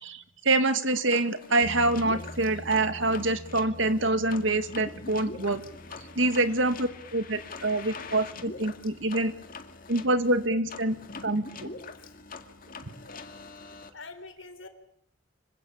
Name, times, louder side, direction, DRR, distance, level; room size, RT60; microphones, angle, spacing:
voice 1, 0.0-5.6 6.2-9.3 9.9-11.0 11.2-11.7, right 2 dB, 75° right, 9 dB, 2.1 m, -26 dB
sound 1, 1.1-13.9, left 4 dB, 45° left, 2.1 m, -44 dB
sound 2, 1.6-13.9, equal, 20° right, 7.6 m, -49 dB
voice 2, 6.1-6.5 12.0-12.1 13.0-13.3 13.9-14.7, left 3 dB, 80° left, 8 dB, 4.0 m, -46 dB
26.0 x 16.5 x 8.9 m, 0.73 s
head